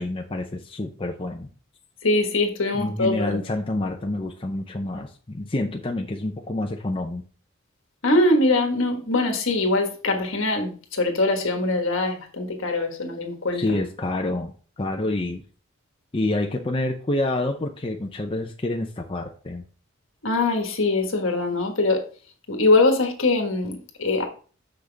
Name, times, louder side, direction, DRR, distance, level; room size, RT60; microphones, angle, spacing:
voice 1, 0.0-1.5 2.8-7.2 13.5-14.5 14.8-15.4 16.1-19.6, left 2 dB, 25° left, 0.6 m, -27 dB
voice 2, 2.0-3.4 8.0-13.8 20.2-22.0 22.5-24.2, left 2 dB, 65° left, 1.5 m, -22 dB
6.5 x 6.0 x 3.4 m
head